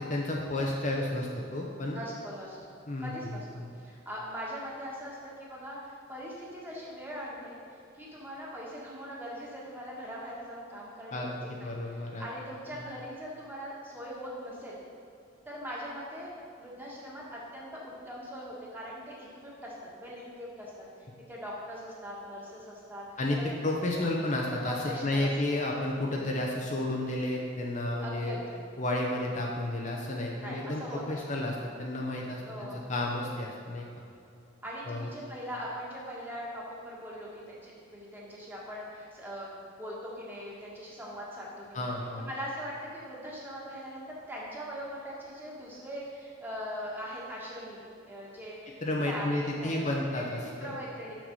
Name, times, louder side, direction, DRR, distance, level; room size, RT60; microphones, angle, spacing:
voice 1, 0.1-2.0 2.9-3.7 11.1-12.3 23.2-28.4 28.8-33.9 34.8-35.1 41.7-42.3 48.8-50.7, left 1 dB, 40° left, -1 dB, 0.7 m, -32 dB
voice 2, 1.9-2.6 3.0-7.6 7.9-11.3 11.6-14.8 15.4-16.3 16.6-20.7 21.0-23.8 24.5-25.3 26.0-26.4 28.0-28.6 30.4-31.4 32.5-32.9 34.6-41.9 42.2-51.2, equal, 10° right, -5 dB, 1.6 m, -41 dB
6.6 x 6.1 x 5.5 m, 2.6 s
head